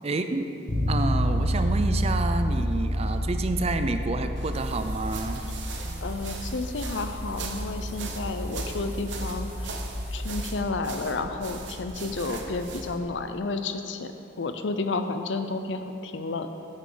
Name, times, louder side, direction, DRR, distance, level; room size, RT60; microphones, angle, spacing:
voice 1, 0.0-0.4 0.9-5.4, right 2 dB, 35° right, 8 dB, 0.5 m, -29 dB
Bass guitar, 0.7-10.5, equal, 65° left, 1.5 m, -30 dB
sound 1, 4.4-13.0, right 2 dB, 80° right, 0.9 m, -38 dB
sound 2, 4.5-10.5, right 1 dB, 10° right, 2.1 m, -50 dB
voice 2, 6.0-9.8 10.1-14.1 14.4-16.5, left 3 dB, 85° left, 8 dB, 0.6 m, -31 dB
10.0 x 8.4 x 3.9 m, 2.8 s
head